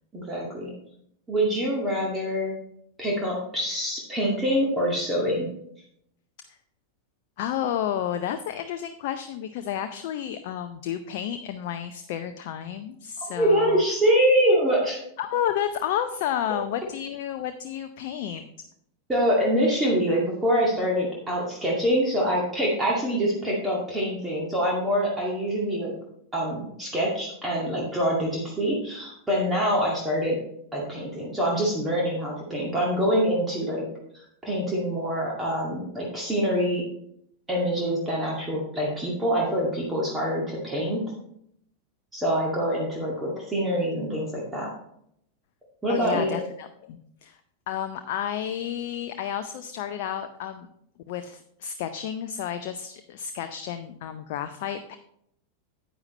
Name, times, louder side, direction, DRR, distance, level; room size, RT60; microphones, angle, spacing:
voice 1, 0.1-0.7 1.3-2.6 3.0-5.5 13.3-15.0 19.1-25.9 26.3-30.4 30.7-33.9 34.4-36.9 37.5-41.1 42.1-44.7 45.8-46.4, equal, 10° right, -3 dB, 2.1 m, -25 dB
voice 2, 7.4-13.8 15.2-18.5 45.9-47.4 47.7-50.7 51.1-55.0, left 10 dB, 50° left, 8 dB, 0.5 m, -31 dB
9.6 x 8.9 x 3.2 m, 0.72 s
figure-of-eight pair, 90°, 0 cm